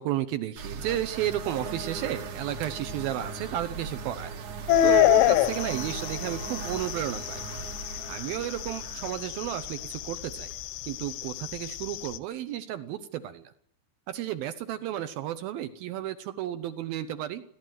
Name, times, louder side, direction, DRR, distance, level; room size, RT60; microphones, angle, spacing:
voice 1, 0.0-4.3 4.8-7.4 8.1-10.5 10.8-13.5 14.1-17.4, right 12 dB, 75° right, 12 dB, 2.3 m, -32 dB
sound 1, 0.6-11.2, right 5 dB, 55° right, 2.5 m, -39 dB
sound 2, 4.7-12.2, left 13 dB, 85° left, 3.5 m, -27 dB
28.0 x 12.5 x 9.3 m, 0.67 s
omnidirectional pair, 5.4 m